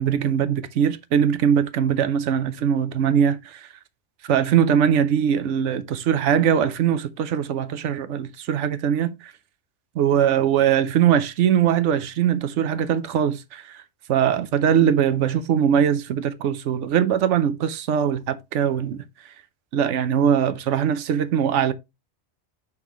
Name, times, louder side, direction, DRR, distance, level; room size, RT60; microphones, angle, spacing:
voice 1, 0.0-3.7 4.3-9.3 10.0-13.8 14.1-19.0 19.7-21.7, right 8 dB, 85° right, 1.0 m, -21 dB
6.0 x 5.4 x 3.0 m
omnidirectional pair, 1.2 m